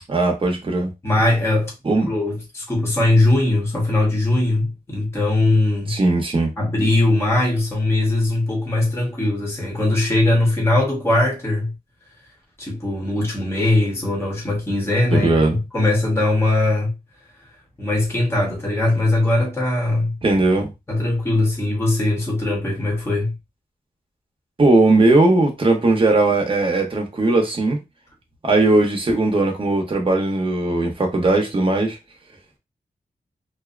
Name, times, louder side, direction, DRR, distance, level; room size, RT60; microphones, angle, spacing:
voice 1, 0.1-0.9 1.8-2.1 5.9-6.5 15.1-15.6 20.2-20.7 24.6-27.8 28.4-32.0, right 2 dB, 35° right, 0.9 m, -18 dB
voice 2, 1.0-1.7 2.1-6.0 6.6-11.7 12.6-16.9 17.8-20.1 20.9-23.3, left 2 dB, 15° left, 1.0 m, -20 dB
2.6 x 2.2 x 2.4 m
wide cardioid pair, 115°, 15 cm